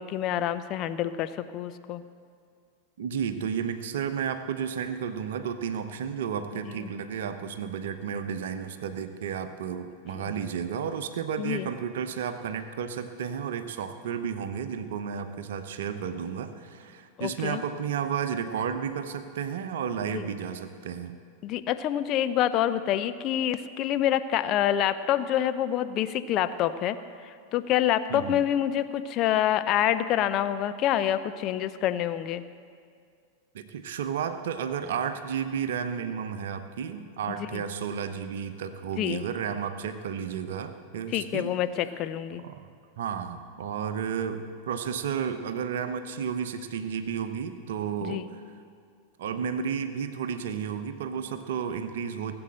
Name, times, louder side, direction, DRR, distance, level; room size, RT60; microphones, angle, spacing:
voice 1, 0.0-2.0 10.1-10.3 11.4-11.7 17.2-17.6 20.1-20.3 21.4-27.0 27.2-32.4 37.5-37.6 39.0-39.2 41.1-42.4 48.0-48.3, left 11 dB, 35° left, 11 dB, 0.6 m, -27 dB
voice 2, 3.0-21.2 28.1-28.4 33.5-41.5 42.4-42.6 43.0-48.4 49.2-52.3, right 7 dB, 60° right, 9 dB, 0.9 m, -32 dB
18.0 x 7.9 x 7.6 m, 2.2 s
figure-of-eight pair, 90°, 0 cm